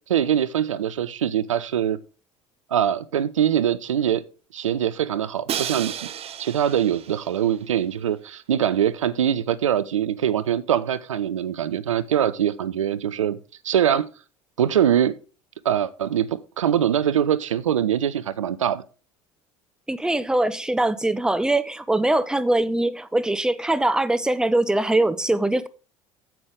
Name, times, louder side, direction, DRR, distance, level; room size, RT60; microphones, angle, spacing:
voice 1, 0.1-2.0 2.7-4.2 4.5-5.9 6.4-13.4 13.6-14.1 14.6-15.2 15.6-18.8, right 10 dB, 80° right, 0.5 m, -23 dB
Crash cymbal, 5.5-7.5, right 10 dB, 40° right, 0.8 m, -32 dB
voice 2, 19.9-25.7, right 2 dB, 5° right, 0.7 m, -22 dB
8.9 x 7.9 x 3.6 m
figure-of-eight pair, 65°, 16 cm